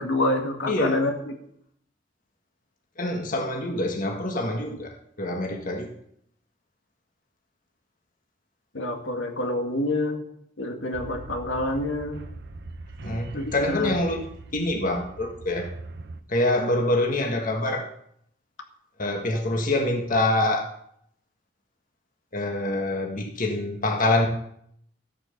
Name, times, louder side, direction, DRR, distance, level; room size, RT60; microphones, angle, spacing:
voice 1, 0.0-1.3 8.7-10.2 10.6-12.2 13.3-13.9, left 1 dB, 80° left, 3 dB, 2.1 m, -27 dB
voice 2, 0.7-1.0 3.0-5.9 13.0-14.2 14.5-15.7 16.3-17.8 19.0-20.7 22.3-24.3, left 1 dB, 45° left, 2 dB, 1.5 m, -25 dB
sound 1, 10.9-16.2, right 2 dB, 60° right, 0.9 m, -41 dB
13.5 x 8.5 x 6.7 m, 0.71 s
head